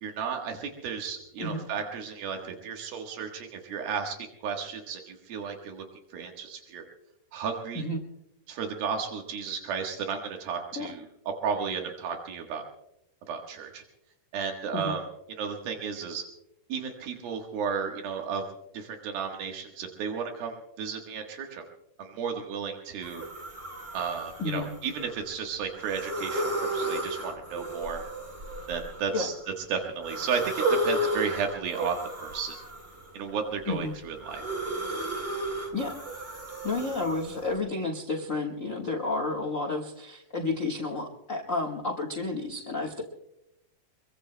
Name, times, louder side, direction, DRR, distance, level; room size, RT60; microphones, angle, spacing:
voice 1, 0.0-5.9 6.1-6.8 7.3-7.9 8.5-11.0 11.4-12.6 13.3-13.8 14.3-15.0 15.4-16.2 16.7-18.4 18.7-21.7 22.0-23.2 23.9-28.0 28.7-29.3 29.7-32.5 33.1-34.4, right 6 dB, 85° right, 2 dB, 3.3 m, -33 dB
sound 1, 23.0-25.3 25.7-29.4 30.0-33.2 33.6-37.5, right 1 dB, 25° right, 1.4 m, -33 dB
voice 2, 36.6-43.0, left 3 dB, 90° left, 3 dB, 0.7 m, -31 dB
25.0 x 23.0 x 2.2 m, 0.83 s
omnidirectional pair, 4.1 m